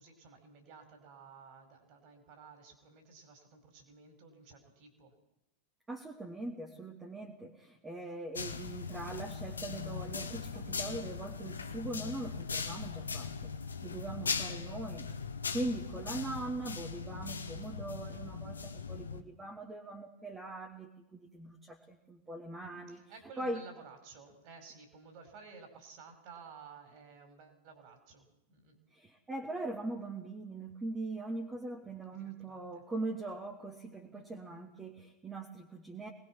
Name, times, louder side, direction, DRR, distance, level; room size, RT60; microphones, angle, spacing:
voice 1, 0.0-5.2 14.8-15.0 16.0-16.1 22.9-28.8 32.1-32.6 34.1-34.5, right 5 dB, 45° right, 5 dB, 5.2 m, -54 dB
voice 2, 5.9-13.5 13.8-15.1 15.5-23.0 23.4-23.6 28.9-36.1, right 2 dB, 15° right, 0 dB, 2.6 m, -41 dB
sound 1, 8.3-19.2, left 5 dB, 75° left, 1.6 m, -39 dB
23.5 x 20.0 x 6.2 m, 0.89 s
figure-of-eight pair, 90°, 0 cm